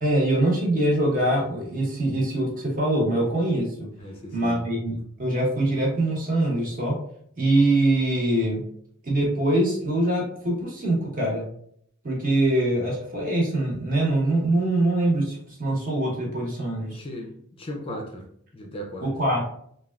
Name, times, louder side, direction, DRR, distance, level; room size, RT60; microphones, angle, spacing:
voice 1, 0.0-3.7 4.3-7.0 7.4-8.6 9.0-11.5 12.0-17.0 19.0-19.4, right 1 dB, 40° right, -3 dB, 1.0 m, -23 dB
voice 2, 4.0-4.6 16.9-17.3 17.6-18.2 18.5-19.1, equal, 25° left, 1 dB, 0.4 m, -36 dB
3.4 x 2.3 x 2.3 m, 0.66 s
head